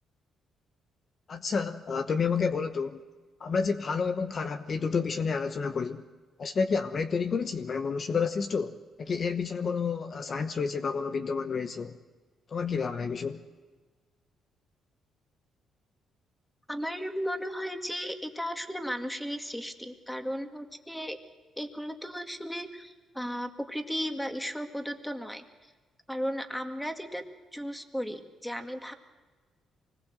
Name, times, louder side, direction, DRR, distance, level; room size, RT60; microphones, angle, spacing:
voice 1, 1.3-3.0 3.4-6.0 6.4-11.9 12.5-13.4, left 5 dB, 45° left, 1.0 m, -30 dB
voice 2, 16.7-21.2 21.6-25.4 26.1-27.3 27.5-28.9, equal, 5° left, 2.1 m, -35 dB
25.0 x 20.0 x 7.6 m
cardioid pair, 90°, 0 cm